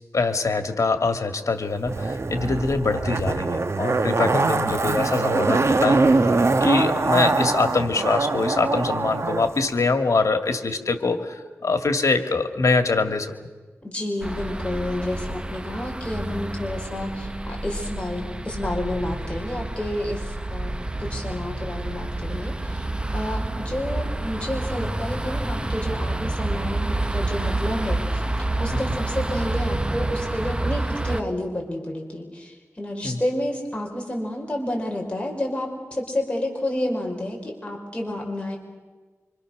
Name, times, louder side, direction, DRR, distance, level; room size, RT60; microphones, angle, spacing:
voice 1, 0.1-13.3 28.7-29.0 33.0-33.2, left 3 dB, 80° left, 7 dB, 2.1 m, -24 dB
Zipper (clothing), 1.9-9.5 9.8-9.9, right 3 dB, 60° right, 1.2 m, -22 dB
voice 2, 13.8-20.7 21.0-22.8 23.1-28.2 28.6-38.6, left 1 dB, 20° left, 0 dB, 5.1 m, -30 dB
sound 1, 14.2-31.2, right 2 dB, 20° right, 0.8 m, -28 dB
27.5 x 26.0 x 6.6 m, 1.3 s
wide cardioid pair, 85°, 5 cm